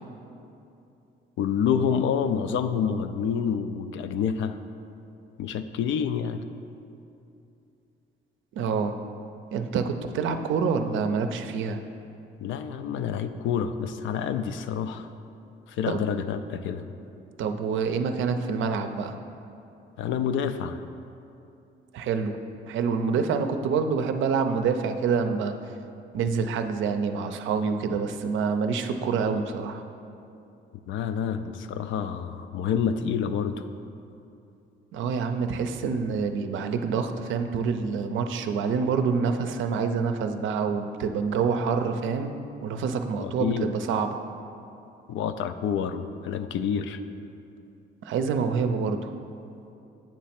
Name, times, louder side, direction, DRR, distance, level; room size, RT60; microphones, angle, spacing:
voice 1, 1.4-4.6 5.4-6.4 12.4-15.1 15.7-16.8 20.0-20.8 30.9-33.6 43.2-43.7 45.1-47.0, left 7 dB, 75° left, 10 dB, 0.4 m, -28 dB
voice 2, 8.5-8.9 9.5-11.8 15.9-16.0 17.4-19.2 21.9-22.3 22.7-25.6 26.1-29.8 34.9-42.3 42.6-44.2 48.0-49.1, right 5 dB, 75° right, 7 dB, 0.5 m, -27 dB
8.6 x 3.1 x 5.8 m, 2.7 s
cardioid pair, 90°, 20 cm